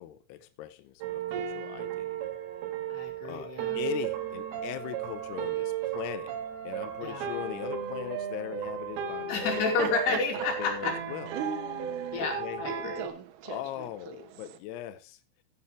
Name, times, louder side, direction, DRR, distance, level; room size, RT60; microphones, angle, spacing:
voice 1, 0.0-2.2 3.2-6.3 6.7-9.6 10.1-10.2 10.6-11.3 12.2-12.6 13.4-15.2, left 12 dB, 80° left, 10 dB, 2.4 m, -39 dB
sound 1, 1.0-13.1, right 8 dB, 65° right, 3.2 m, -35 dB
voice 2, 2.9-3.8 7.0-7.3 9.3-11.2 12.1-13.1, left 4 dB, 60° left, 2 dB, 4.6 m, -31 dB
Laughter, 9.3-14.6, right 9 dB, 90° right, 3.7 m, -40 dB
15.0 x 9.0 x 3.2 m, 0.30 s
omnidirectional pair, 5.5 m